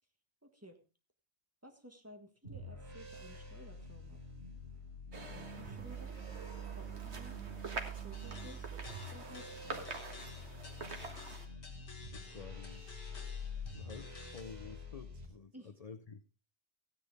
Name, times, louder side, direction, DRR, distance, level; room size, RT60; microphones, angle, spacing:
voice 1, 0.4-0.8 1.6-4.2 5.3-6.2 6.7-7.4 7.9-8.8 9.1-10.0 15.5-15.7, equal, 15° right, 4 dB, 1.6 m, -55 dB
sound 1, 2.4-15.3, equal, 70° right, 4.0 m, -46 dB
sound 2, 5.1-11.5, right 4 dB, 85° right, 1.9 m, -46 dB
sound 3, 8.1-14.4, left 4 dB, 85° left, 2.2 m, -55 dB
voice 2, 11.7-12.9 13.7-16.2, left 5 dB, 40° left, 11 dB, 0.6 m, -51 dB
15.0 x 10.0 x 3.5 m, 0.32 s
omnidirectional pair, 1.1 m